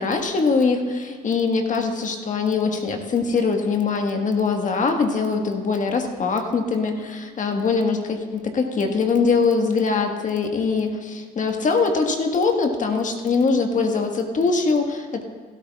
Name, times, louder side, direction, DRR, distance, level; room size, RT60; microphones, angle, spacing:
voice 1, 0.0-15.2, left 4 dB, 40° left, 4 dB, 1.6 m, -22 dB
16.5 x 12.5 x 2.4 m, 1.5 s
supercardioid pair, 70°, 19 cm